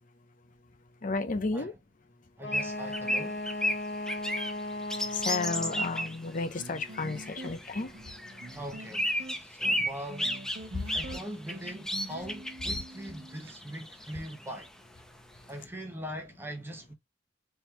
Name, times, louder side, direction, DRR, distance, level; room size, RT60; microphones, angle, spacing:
voice 1, 1.0-1.7 4.9-8.6 10.6-11.1 12.7-12.8 15.3-15.5, left 3 dB, 45° left, 0.7 m, -34 dB
Wind instrument woodwind instrument, 2.4-6.1, left 2 dB, 85° left, 1.0 m, -37 dB
voice 2, 2.4-3.4 8.5-10.3 10.9-14.7 15.5-16.9, equal, 15° right, 0.9 m, -41 dB
sound 1, 2.5-6.2 6.6-14.7, equal, 5° left, 0.5 m, -33 dB
sound 2, 6.6-13.6, right 1 dB, 75° right, 1.0 m, -45 dB
3.6 x 2.9 x 2.9 m
head